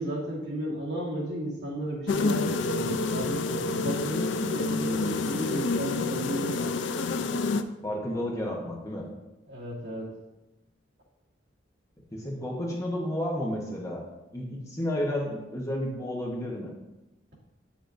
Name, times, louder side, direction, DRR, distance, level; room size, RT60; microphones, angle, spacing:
voice 1, 0.0-6.7 9.5-10.1, right 1 dB, 60° right, -5 dB, 2.2 m, -34 dB
sound 1, 2.1-7.6, left 3 dB, 75° left, 0.4 m, -28 dB
voice 2, 7.8-9.1 12.1-14.0 14.3-16.7, left 1 dB, 15° left, -1 dB, 0.9 m, -31 dB
8.6 x 7.1 x 2.6 m, 1.0 s
head